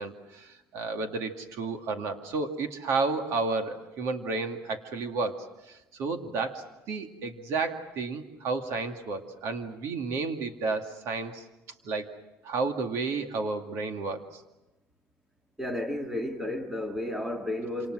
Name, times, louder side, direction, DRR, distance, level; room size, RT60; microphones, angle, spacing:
voice 1, 0.0-11.4 11.8-12.1 12.4-14.4, right 3 dB, 60° right, 2.3 m, -32 dB
voice 2, 15.6-17.9, left 1 dB, 5° right, 1.8 m, -32 dB
27.5 x 27.5 x 6.3 m
cardioid pair, 170°, 5 cm